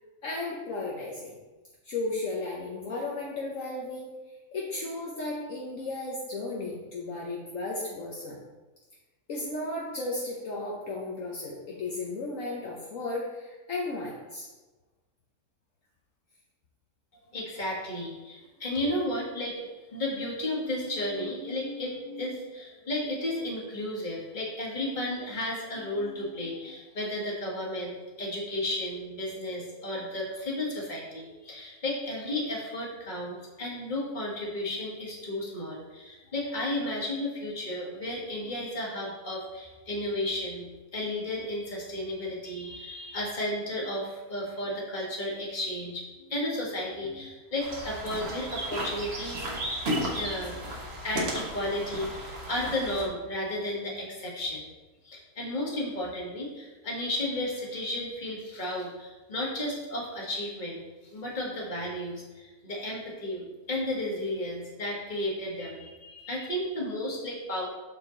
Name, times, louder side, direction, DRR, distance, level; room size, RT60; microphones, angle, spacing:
voice 1, 0.2-1.3 1.8-4.1 4.5-8.4 9.3-14.5, left 2 dB, 60° left, -3 dB, 1.3 m, -34 dB
voice 2, 17.3-49.5 50.1-50.6 51.0-54.7 55.0-60.8 61.1-67.7, left 1 dB, 30° left, -3 dB, 1.7 m, -33 dB
sound 1, 47.6-53.0, equal, 45° right, 1.4 m, -34 dB
6.5 x 5.7 x 3.9 m, 1.2 s
omnidirectional pair, 1.6 m